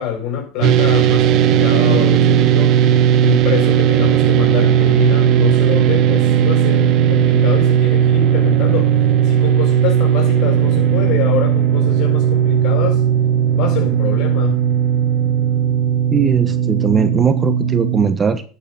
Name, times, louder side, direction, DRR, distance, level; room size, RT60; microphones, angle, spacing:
voice 1, 0.0-2.9 3.2-9.0 9.2-13.1 13.5-14.7, left 8 dB, 65° left, 5.5 m, -25 dB
sound 1, 0.6-18.1, right 9 dB, 55° right, 1.3 m, -15 dB
voice 2, 16.1-18.4, right 5 dB, 25° right, 1.2 m, -18 dB
10.0 x 6.8 x 5.5 m
supercardioid pair, 115°, 0 cm